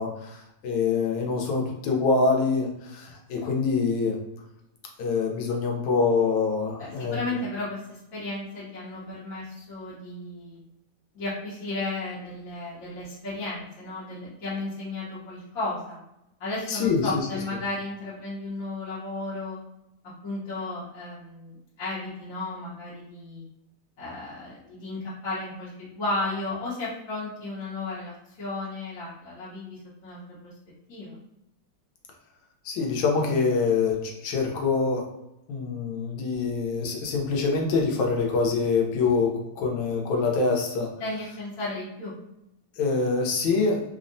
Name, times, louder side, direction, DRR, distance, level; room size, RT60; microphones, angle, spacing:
voice 1, 0.0-4.2 5.0-7.3 16.7-17.1 32.6-35.1 35.5-40.9 42.8-43.8, left 4 dB, 90° left, 0 dB, 1.4 m, -25 dB
voice 2, 6.8-10.6 11.1-16.0 16.4-19.6 20.0-23.4 24.0-30.5 30.9-31.1 41.0-42.2, left 2 dB, 55° left, -10 dB, 1.1 m, -34 dB
3.5 x 2.0 x 2.5 m, 0.87 s
omnidirectional pair, 2.1 m